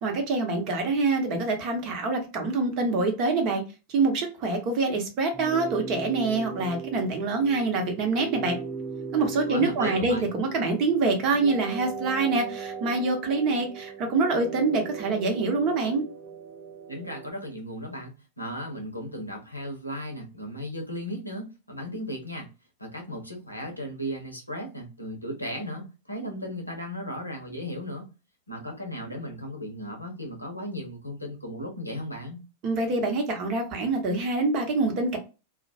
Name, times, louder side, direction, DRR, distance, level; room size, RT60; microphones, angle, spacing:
voice 1, 0.0-3.6 3.9-8.6 9.1-16.0 32.6-35.2, right 3 dB, 40° right, 0.8 m, -25 dB
sound 1, 5.3-17.3, right 5 dB, 10° right, 0.4 m, -38 dB
voice 2, 9.4-10.3 16.9-22.5 22.8-28.1 28.5-32.4, equal, 85° left, 0.7 m, -36 dB
2.2 x 2.0 x 2.7 m
figure-of-eight pair, 90°, 0 cm